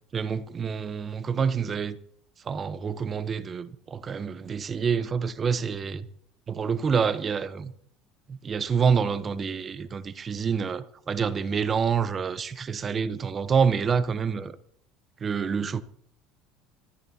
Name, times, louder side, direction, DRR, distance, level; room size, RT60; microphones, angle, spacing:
voice 1, 0.1-2.0 2.4-6.1 6.5-7.7 8.3-14.6 15.2-15.8, right 6 dB, 30° right, 0.9 m, -27 dB
25.5 x 14.0 x 2.8 m
supercardioid pair, 95°, 0 cm